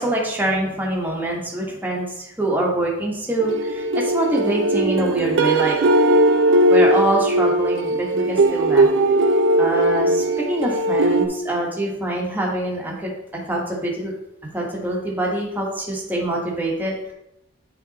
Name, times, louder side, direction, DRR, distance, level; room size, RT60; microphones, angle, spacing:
voice 1, 0.0-5.8 6.7-8.9 9.6-14.1 14.5-17.1, right 1 dB, 10° right, -3 dB, 1.4 m, -24 dB
sound 1, 3.4-11.3, right 1 dB, 65° right, 0.6 m, -18 dB
9.0 x 3.5 x 4.1 m, 0.82 s
head